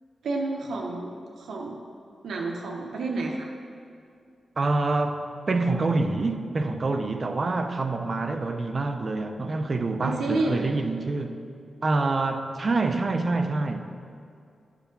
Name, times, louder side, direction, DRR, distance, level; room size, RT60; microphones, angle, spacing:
voice 1, 0.2-1.8 2.2-3.5 10.0-10.6, right 3 dB, 90° right, 0.8 m, -30 dB
voice 2, 4.6-11.4 11.8-13.9, right 3 dB, 45° right, 0.6 m, -26 dB
11.0 x 5.0 x 5.2 m
cardioid pair, 80°, 0 cm